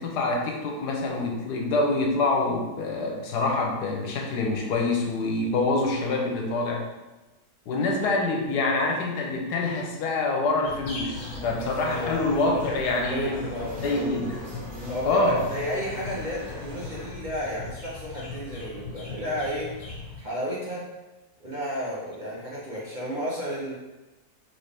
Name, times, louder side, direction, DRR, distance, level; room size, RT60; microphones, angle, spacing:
voice 1, 0.0-6.8 7.7-13.4 13.8-14.4 15.1-15.4, left 2 dB, 85° left, 0 dB, 1.3 m, -26 dB
sound 1, 10.6-20.2, left 4 dB, 60° left, 1.9 m, -39 dB
sound 2, 11.1-17.1, equal, 65° right, 1.4 m, -40 dB
voice 2, 11.8-12.2 13.1-14.1 14.9-19.7 20.2-20.9 21.4-23.7, equal, 35° right, -6 dB, 0.8 m, -32 dB
4.0 x 3.4 x 3.4 m, 1.1 s
omnidirectional pair, 1.7 m